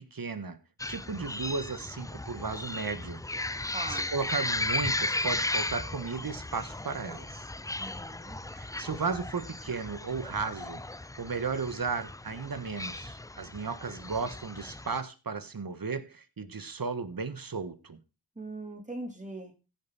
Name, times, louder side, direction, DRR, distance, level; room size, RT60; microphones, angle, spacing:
voice 1, 0.1-0.6 0.9-3.2 3.6-7.4 8.5-10.8 11.2-18.0, right 4 dB, 60° right, 1.5 m, -35 dB
sound 1, 0.8-15.0, left 2 dB, 10° left, 0.4 m, -36 dB
voice 2, 3.7-4.1 7.8-8.4 18.4-19.5, right 2 dB, 20° right, 3.8 m, -40 dB
16.0 x 5.5 x 4.2 m
cardioid pair, 45°, 40 cm